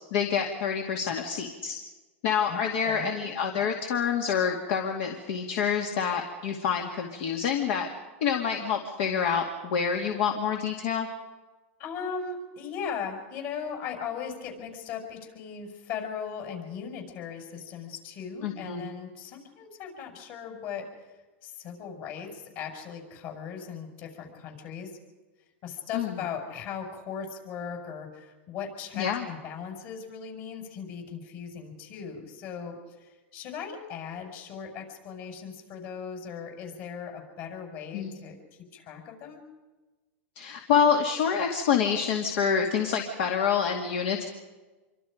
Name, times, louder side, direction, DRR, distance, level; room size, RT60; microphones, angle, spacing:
voice 1, 0.1-1.8 2.2-7.9 8.2-11.1 18.4-18.9 25.9-26.2 29.0-29.3 37.9-38.1 40.4-44.3, left 7 dB, 60° left, 3 dB, 2.4 m, -27 dB
voice 2, 2.5-3.1 11.8-21.1 21.4-25.0 25.6-38.4 38.7-39.4, left 7 dB, 45° left, 3 dB, 6.1 m, -38 dB
26.5 x 24.5 x 5.2 m, 1.2 s
supercardioid pair, 145°, 7 cm